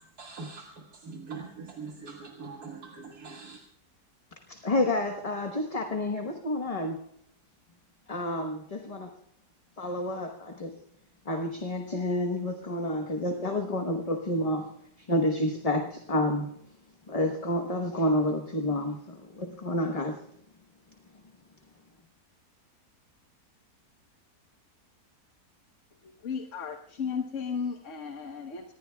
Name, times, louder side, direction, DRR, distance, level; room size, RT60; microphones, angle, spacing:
voice 1, 0.0-3.6, right 4 dB, 70° right, 1 dB, 2.1 m, -43 dB
voice 2, 4.5-7.0 8.1-9.1 9.8-10.8 11.2-14.7 15.0-16.5 17.1-20.2, left 1 dB, 25° left, 3 dB, 1.1 m, -29 dB
voice 3, 26.0-28.7, left 6 dB, 55° left, 5 dB, 1.4 m, -35 dB
25.5 x 19.5 x 2.3 m, 0.70 s
omnidirectional pair, 1.6 m